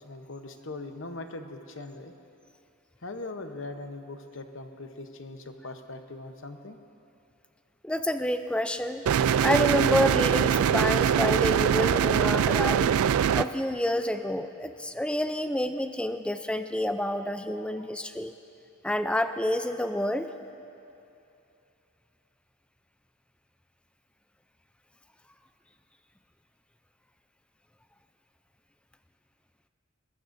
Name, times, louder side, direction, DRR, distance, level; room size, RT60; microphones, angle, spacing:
voice 1, 0.0-2.1 3.0-6.8, left 2 dB, 60° left, 6 dB, 0.9 m, -40 dB
voice 2, 7.8-9.1 9.4-13.0 13.3-18.3 18.8-20.3, left 1 dB, 5° left, 9 dB, 0.4 m, -28 dB
sound 1, 9.1-13.5, right 8 dB, 85° right, 0.3 m, -23 dB
21.5 x 20.0 x 2.6 m, 2.7 s
head